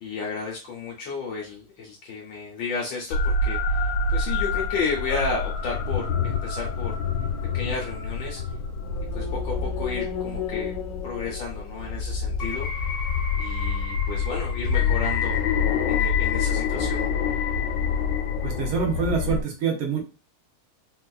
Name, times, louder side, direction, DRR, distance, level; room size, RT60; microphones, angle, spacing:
voice 1, 0.0-6.9 7.5-8.4 9.1-10.7 11.0-12.7 13.4-15.4 15.9-17.0, left 4 dB, 70° left, -1 dB, 1.3 m, -32 dB
sound 1, 3.1-19.4, left 5 dB, 90° left, 1.4 m, -26 dB
voice 2, 18.4-20.0, right 6 dB, 90° right, 1 dB, 1.7 m, -26 dB
4.0 x 2.4 x 2.3 m, 0.31 s
omnidirectional pair, 2.2 m